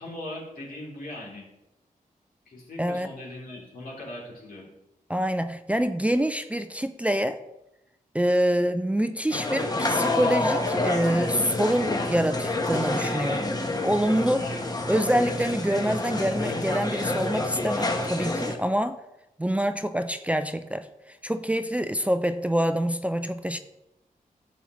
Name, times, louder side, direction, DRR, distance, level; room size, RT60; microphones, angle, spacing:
voice 1, 0.0-1.4 2.5-4.7 14.4-14.8, left 1 dB, 75° left, -3 dB, 3.0 m, -39 dB
voice 2, 2.8-3.1 5.1-7.4 8.1-13.5 13.8-14.4 14.9-19.0 19.4-23.6, equal, 10° right, 9 dB, 0.4 m, -26 dB
sound 1, 9.3-18.6, left 2 dB, 25° left, 1.0 m, -28 dB
11.0 x 7.2 x 3.1 m, 0.91 s
wide cardioid pair, 90°, 15 cm